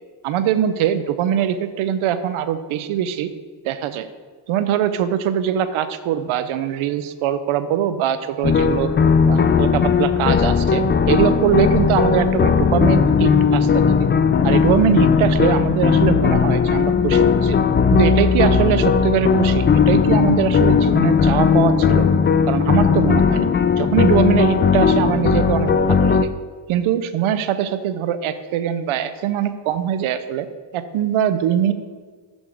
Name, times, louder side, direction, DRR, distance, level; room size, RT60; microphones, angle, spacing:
voice 1, 0.2-3.3 3.6-4.1 4.5-8.9 9.3-14.0 14.4-17.6 17.9-22.1 22.5-23.5 23.8-26.3 26.7-30.5 30.7-31.7, right 10 dB, 80° right, 12 dB, 0.6 m, -22 dB
sound 1, 8.4-26.2, left 6 dB, 25° left, 0.3 m, -17 dB
10.0 x 3.5 x 4.9 m, 1.5 s
cardioid pair, 65°, 48 cm